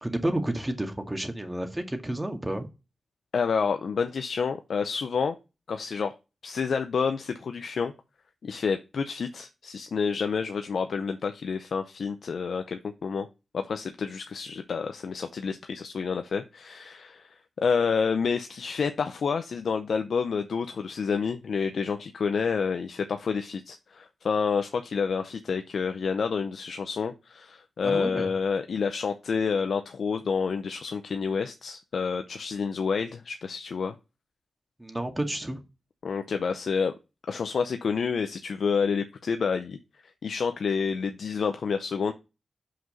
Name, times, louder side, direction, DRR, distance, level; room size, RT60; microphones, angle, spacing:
voice 1, 0.0-2.7 27.8-28.3 34.8-35.6, right 1 dB, 20° right, 6 dB, 2.0 m, -30 dB
voice 2, 3.3-5.4 5.7-6.1 6.4-7.9 8.4-13.3 13.5-33.9 36.0-36.9 37.3-39.8 40.0-42.1, left 5 dB, 75° left, 8 dB, 0.6 m, -29 dB
5.9 x 5.1 x 5.2 m, 0.28 s
supercardioid pair, 40°, 0 cm